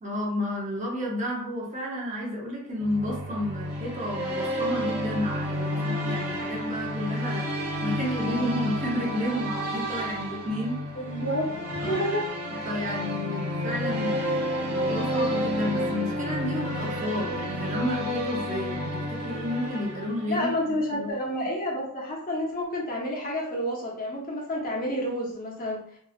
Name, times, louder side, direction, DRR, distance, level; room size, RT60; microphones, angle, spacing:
voice 1, 0.0-7.4 7.8-10.8 11.8-12.0 12.6-20.5 20.9-21.1, left 1 dB, 35° right, -3 dB, 0.7 m, -31 dB
sound 1, 2.8-20.5, equal, 75° right, 0.8 m, -30 dB
voice 2, 10.9-12.2 12.5-12.7 20.3-25.8, equal, 40° left, -4 dB, 0.8 m, -30 dB
2.9 x 2.4 x 2.4 m, 0.64 s
head